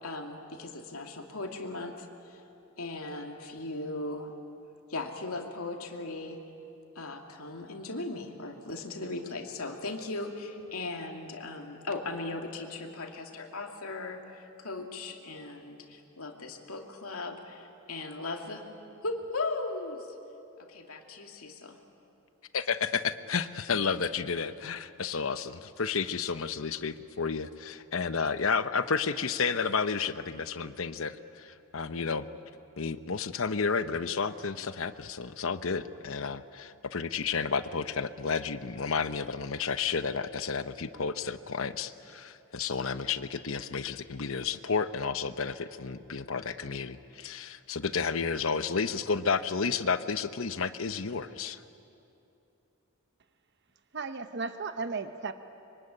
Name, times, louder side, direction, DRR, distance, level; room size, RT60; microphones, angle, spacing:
voice 1, 0.0-2.4 2.8-4.3 4.9-6.4 6.9-18.6 19.0-20.1 20.6-21.8, left 2 dB, 80° left, 3 dB, 2.6 m, -38 dB
voice 2, 22.5-32.3 32.8-51.6, left 5 dB, 65° left, 12 dB, 0.9 m, -31 dB
voice 3, 53.9-55.3, right 4 dB, 55° right, 10 dB, 1.0 m, -35 dB
25.0 x 24.0 x 9.9 m, 2.8 s
head